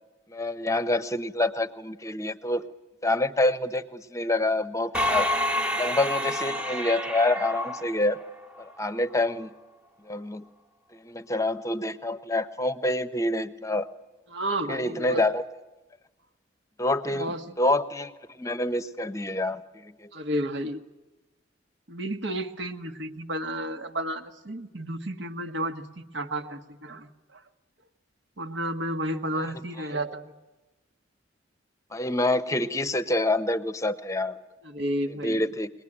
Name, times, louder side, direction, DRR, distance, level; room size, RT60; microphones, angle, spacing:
voice 1, 0.3-2.7 3.0-5.3 5.8-8.2 8.6-9.5 10.1-10.5 11.0-13.9 14.7-15.4 16.8-18.1 18.4-20.1 31.9-34.4 35.2-35.7, left 2 dB, 15° left, 12 dB, 0.9 m, -27 dB
sound 1, 4.9-8.6, left 1 dB, 5° right, 1.4 m, -28 dB
voice 2, 14.3-15.2 17.1-17.5 20.1-20.8 21.9-27.4 28.4-30.3 34.6-35.5, right 1 dB, 65° right, 7 dB, 1.6 m, -32 dB
23.0 x 20.0 x 10.0 m, 1.1 s
head